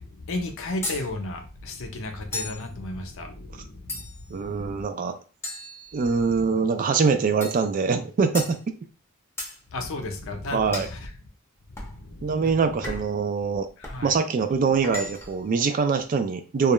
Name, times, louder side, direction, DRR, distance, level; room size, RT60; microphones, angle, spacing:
voice 1, 0.0-4.7 9.7-11.1 11.7-13.0 13.8-14.2, left 2 dB, 65° left, 4 dB, 0.6 m, -34 dB
sound 1, 0.8-1.1 2.3-2.7 3.9-4.3 5.4-6.3 7.4-7.7 8.3-8.6 9.4-9.6 10.7-11.0 11.8-12.0 12.8-13.2 13.8-14.0 14.8-15.4, left 1 dB, 10° left, 0.6 m, -35 dB
voice 2, 4.3-5.2 5.9-8.6 10.5-10.9 12.2-13.7 14.0-16.7, right 5 dB, 40° right, 9 dB, 0.3 m, -23 dB
2.3 x 2.1 x 2.9 m, 0.34 s
head